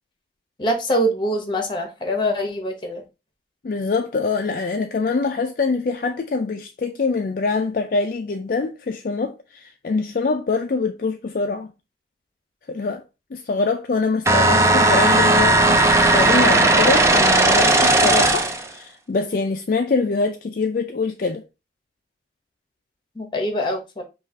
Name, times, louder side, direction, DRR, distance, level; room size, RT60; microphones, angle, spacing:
voice 1, 0.6-3.0 23.2-24.0, equal, 25° left, 0.9 m, -24 dB
voice 2, 3.6-11.7 12.7-13.0 13.3-15.8 16.1-21.4, left 4 dB, 50° left, 0.3 m, -24 dB
sound 1, 14.3-18.7, right 2 dB, 15° right, 0.5 m, -16 dB
5.4 x 2.4 x 3.5 m
head